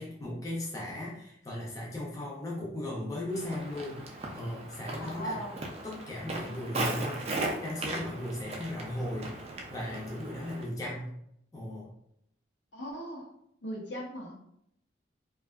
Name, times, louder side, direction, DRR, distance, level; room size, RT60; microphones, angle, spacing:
voice 1, 0.0-5.4 5.8-7.3 7.6-11.1 11.5-11.9, left 1 dB, 15° left, -5 dB, 0.5 m, -37 dB
Walk footsteps, 3.3-10.7, right 2 dB, 35° right, 0.3 m, -37 dB
voice 2, 5.0-5.6 12.7-13.3 13.6-14.3, equal, 70° left, -2 dB, 0.7 m, -38 dB
2.6 x 2.3 x 2.3 m, 0.74 s
head